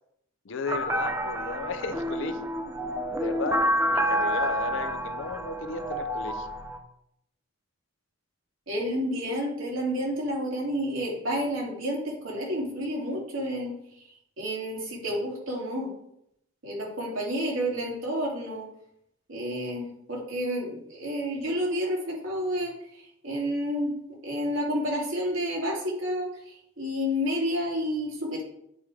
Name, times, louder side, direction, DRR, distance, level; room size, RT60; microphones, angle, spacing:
voice 1, 0.5-2.5 3.2-6.5, left 4 dB, 70° left, 9 dB, 0.6 m, -34 dB
sound 1, 0.7-6.8, right 1 dB, 10° right, 0.5 m, -29 dB
voice 2, 8.7-13.7 14.4-15.9 16.6-18.7 19.3-22.8 23.2-23.9 24.2-28.4, equal, 85° right, -3 dB, 2.4 m, -30 dB
8.8 x 3.3 x 4.8 m, 0.76 s
head